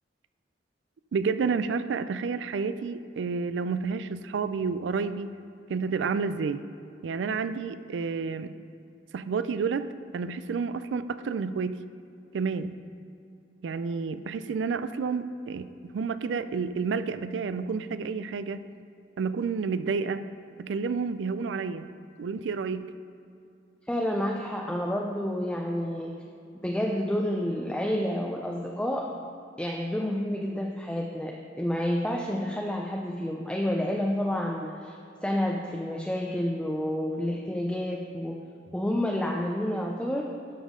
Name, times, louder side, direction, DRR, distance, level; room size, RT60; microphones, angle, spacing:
voice 1, 1.1-5.4 5.7-6.6 7.0-8.5 9.1-11.8 12.3-12.7 13.6-18.7 19.2-20.3 20.6-21.9 22.2-22.9, right 5 dB, 75° right, 12 dB, 0.4 m, -30 dB
voice 2, 23.9-26.1 26.6-29.1 29.6-35.0 35.2-38.4 38.7-40.3, left 1 dB, 5° left, 0 dB, 0.4 m, -29 dB
12.0 x 5.4 x 3.7 m, 2.5 s
head